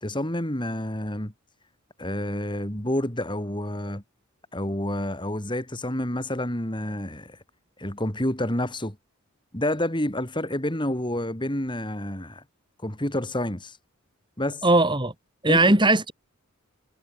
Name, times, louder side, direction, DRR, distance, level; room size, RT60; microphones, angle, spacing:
voice 1, 0.0-1.3 2.0-4.0 4.5-7.4 7.8-9.0 9.5-12.4 12.8-13.7 14.4-14.6 15.5-15.7, left 1 dB, 20° left, 3.6 m, -29 dB
voice 2, 14.6-15.1 15.4-16.1, right 2 dB, 20° right, 5.0 m, -19 dB
head